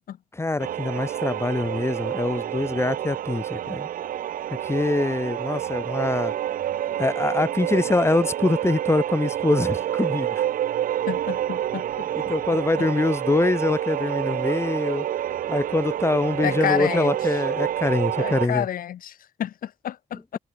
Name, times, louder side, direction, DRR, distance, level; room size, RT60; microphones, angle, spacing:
voice 1, 0.3-3.9 4.5-6.3 7.0-10.4 12.1-15.1 15.5-18.7, left 2 dB, 20° left, 1.1 m, -24 dB
sound 1, 0.6-18.5, right 11 dB, 80° right, 0.7 m, -28 dB
voice 2, 11.1-11.8 16.4-17.1 18.2-20.4, left 10 dB, 85° left, 4.0 m, -29 dB
cardioid pair, 80°, 14 cm